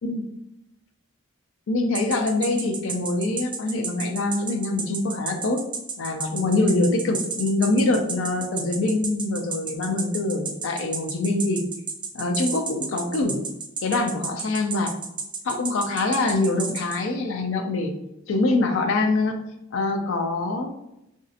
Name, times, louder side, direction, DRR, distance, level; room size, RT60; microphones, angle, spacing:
voice 1, 1.7-5.6 6.0-11.6 12.1-13.4 13.8-14.9 15.4-17.9 18.3-19.4 19.7-20.7, left 2 dB, 60° left, 4 dB, 0.4 m, -24 dB
sound 1, 1.9-17.0, right 5 dB, 20° right, 0.3 m, -31 dB
4.0 x 2.7 x 2.5 m, 0.85 s
head